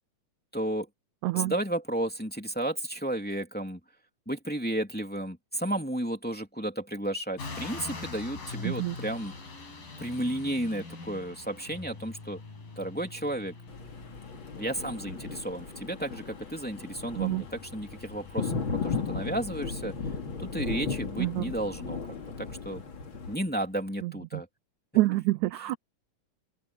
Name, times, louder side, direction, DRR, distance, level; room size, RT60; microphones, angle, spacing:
voice 1, 0.5-0.9 1.3-3.8 4.3-9.3 10.0-12.4 12.8-13.5 14.6-19.9 20.4-22.8 23.3-24.5 25.5-25.7, right 1 dB, 5° left, 2.6 m, -33 dB
sound 1, 7.4-23.9, left 3 dB, 80° left, 9.0 m, -45 dB
voice 2, 8.7-9.0 17.2-17.4 21.2-21.4 24.0-24.1 25.0-25.8, right 18 dB, 80° right, 1.8 m, -27 dB
Thunder, 13.7-23.4, left 5 dB, 40° left, 3.0 m, -36 dB
open air
omnidirectional pair, 3.9 m